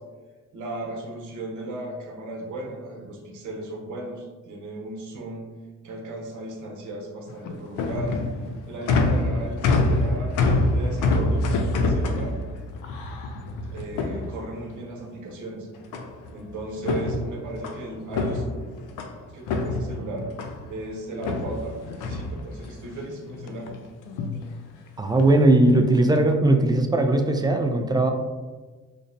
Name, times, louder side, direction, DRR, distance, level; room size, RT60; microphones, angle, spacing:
voice 1, 0.5-5.5 5.8-8.2 8.7-10.3 10.7-12.4 13.7-15.7 16.3-18.4 19.3-20.3 20.7-23.7, right 2 dB, 75° right, 0 dB, 0.9 m, -36 dB
sound 1, 7.3-14.8 15.9-16.4 16.7-19.2 19.5-20.7 21.2-22.9 23.3-23.8 24.1-24.4 25.2-25.5 26.0-26.3, left 2 dB, 90° left, 0.5 m, -26 dB
voice 2, 25.0-28.1, right 2 dB, 15° right, 4 dB, 0.3 m, -19 dB
5.2 x 2.0 x 2.6 m, 1.3 s
cardioid pair, 90°, 30 cm